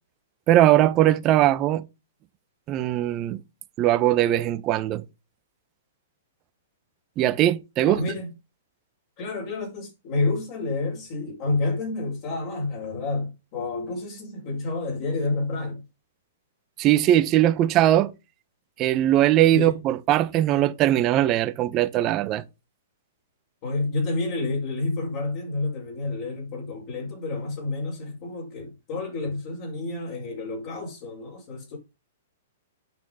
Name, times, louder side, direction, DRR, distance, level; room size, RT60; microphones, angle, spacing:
voice 1, 0.5-1.8 2.7-3.4 3.8-5.0 7.2-8.0 16.8-18.1 18.8-22.4, right 13 dB, 30° right, 1.0 m, -20 dB
voice 2, 7.8-8.3 9.2-15.8 19.5-19.7 23.6-31.8, left 3 dB, 45° left, 5.6 m, -29 dB
9.1 x 6.0 x 5.6 m
hypercardioid pair, 130°, 0 cm